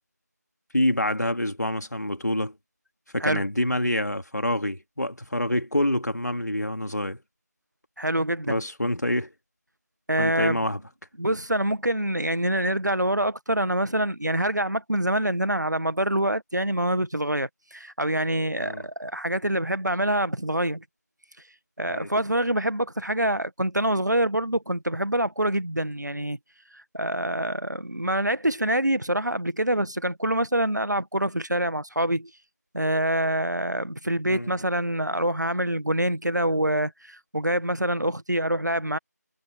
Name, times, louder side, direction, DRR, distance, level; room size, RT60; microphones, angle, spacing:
voice 1, 0.7-2.5 3.1-7.2 8.5-9.3 10.2-10.8 18.6-18.9 21.9-22.1 34.3-34.6, left 1 dB, 70° left, 2.9 m, -26 dB
voice 2, 8.0-8.6 10.1-10.6 11.2-20.8 21.8-26.4 26.7-32.3 32.7-39.0, right 1 dB, 80° right, 1.6 m, -26 dB
figure-of-eight pair, 170°, 9 cm